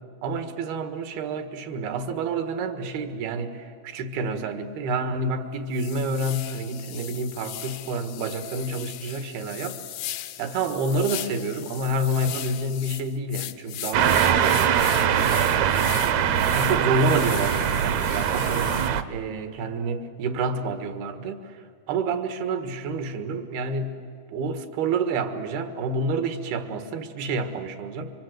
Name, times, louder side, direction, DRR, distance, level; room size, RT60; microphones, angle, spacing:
voice 1, 0.2-9.8 10.4-21.6 21.9-24.0 24.3-28.1, right 2 dB, 85° right, 8 dB, 3.6 m, -29 dB
sound 1, 4.5-4.6 5.1-5.3 5.7-18.9, left 14 dB, 80° left, 2.6 m, -38 dB
sound 2, 13.9-19.0, right 9 dB, 70° right, 1.7 m, -22 dB
29.5 x 25.5 x 7.9 m, 2.2 s
omnidirectional pair, 4.3 m